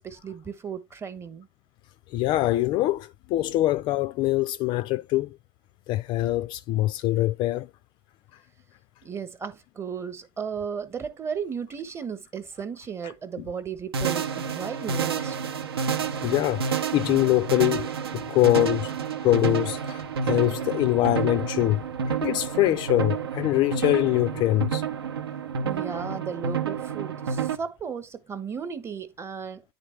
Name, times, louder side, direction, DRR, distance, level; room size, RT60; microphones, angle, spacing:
voice 1, 0.0-1.5 9.0-15.3 25.6-29.7, right 6 dB, 20° right, 1.0 m, -35 dB
voice 2, 2.1-5.4 5.9-7.7 16.2-18.9 19.2-24.8, left 16 dB, 40° left, 0.3 m, -24 dB
sound 1, 13.9-27.6, right 6 dB, 80° right, 0.8 m, -29 dB
9.6 x 3.8 x 3.3 m
hypercardioid pair, 100°, 13 cm